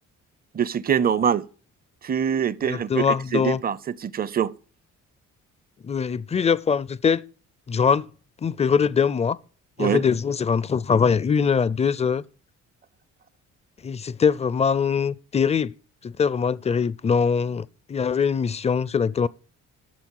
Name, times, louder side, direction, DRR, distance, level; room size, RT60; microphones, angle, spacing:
voice 1, 0.5-1.5 2.0-3.1 3.3-4.5 9.8-10.0, right 8 dB, 30° right, 0.5 m, -24 dB
voice 2, 2.6-3.6 5.8-7.2 7.7-8.1 8.4-9.4 9.8-12.2 13.8-15.7 16.0-19.3, left 6 dB, 20° left, 0.4 m, -22 dB
12.0 x 6.9 x 4.6 m
cardioid pair, 90°, 30 cm